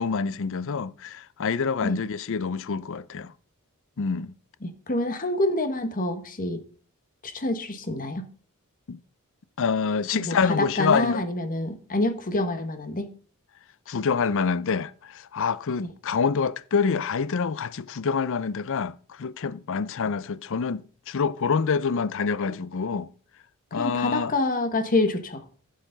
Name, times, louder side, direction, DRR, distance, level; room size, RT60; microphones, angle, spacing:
voice 1, 0.0-3.3 4.0-4.3 8.9-9.0 9.6-11.2 13.9-23.1 23.7-24.3, left 5 dB, 60° left, 0.5 m, -26 dB
voice 2, 4.6-6.6 7.2-8.2 10.1-13.1 15.8-15.9 22.5-22.6 23.7-25.4, left 2 dB, 40° left, 1.2 m, -27 dB
15.0 x 6.7 x 3.9 m
head